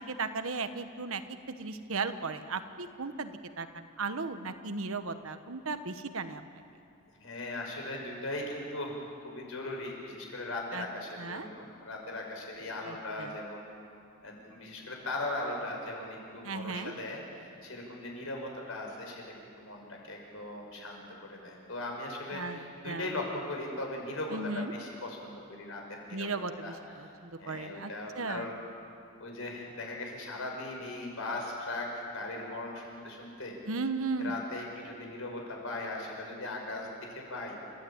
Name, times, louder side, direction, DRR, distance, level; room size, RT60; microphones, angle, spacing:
voice 1, 0.0-6.4 10.7-10.8 11.2-11.5 12.9-13.3 16.4-16.9 22.3-22.6 22.8-23.1 24.3-24.7 26.1-28.5 33.7-34.3, right 3 dB, 75° right, 9 dB, 1.2 m, -36 dB
voice 2, 7.2-13.7 14.2-27.1 27.4-28.5 29.2-33.5 34.2-37.5, left 2 dB, 70° left, 0 dB, 5.7 m, -39 dB
29.0 x 14.5 x 8.8 m, 2.5 s
head